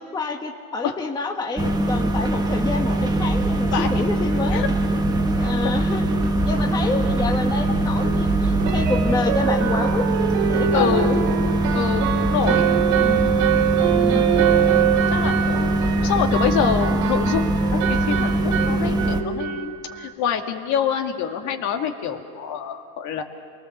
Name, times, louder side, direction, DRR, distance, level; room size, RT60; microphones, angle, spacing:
voice 1, 0.0-4.6 5.4-6.0 6.4-10.0 10.4-11.2 13.0-13.3 13.9-14.3, left 3 dB, 10° left, 3 dB, 1.2 m, -28 dB
sound 1, 1.6-19.2, right 1 dB, 10° right, 1.1 m, -22 dB
sound 2, 2.8-9.0, right 6 dB, 40° right, 2.6 m, -31 dB
sound 3, 4.7-4.8 5.2-5.3 5.6-5.7 8.7-20.1, right 11 dB, 70° right, 2.6 m, -24 dB
voice 2, 5.4-5.8 10.7-11.2 11.7-12.7 14.3-23.2, left 8 dB, 50° left, 5 dB, 2.1 m, -26 dB
28.0 x 20.0 x 7.3 m, 2.3 s
supercardioid pair, 145°, 37 cm